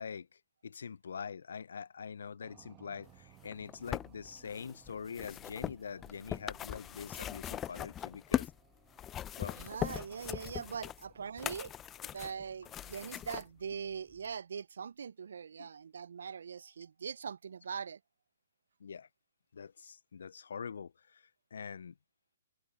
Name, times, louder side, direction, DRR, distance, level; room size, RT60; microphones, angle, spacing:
voice 1, 0.0-8.5 9.4-9.6 15.6-15.7 18.8-19.1 19.5-21.9, left 6 dB, 65° left, 0.6 m, -44 dB
sound 1, 2.4-12.3, right 19 dB, 25° right, 1.8 m, -64 dB
sound 2, 3.4-8.6 8.9-13.4 14.2-14.3, left 11 dB, 20° left, 0.9 m, -40 dB
voice 2, 9.5-11.7 12.1-18.0, right 6 dB, 65° right, 0.6 m, -42 dB
figure-of-eight pair, 130°, 0 cm